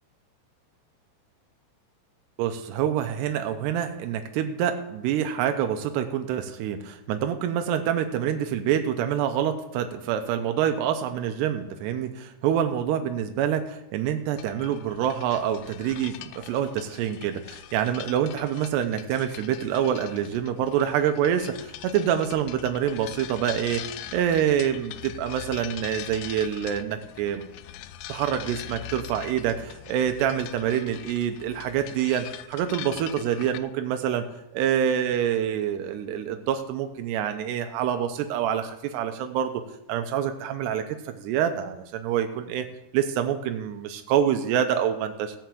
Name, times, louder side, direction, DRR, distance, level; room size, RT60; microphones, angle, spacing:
voice 1, 2.4-27.4 28.1-34.3 34.5-39.5 39.9-42.7 42.9-45.3, right 9 dB, 90° right, 7 dB, 2.9 m, -26 dB
sound 1, 14.4-33.6, left 13 dB, 85° left, 2.6 m, -42 dB
17.0 x 5.7 x 7.7 m, 0.89 s
omnidirectional pair, 4.8 m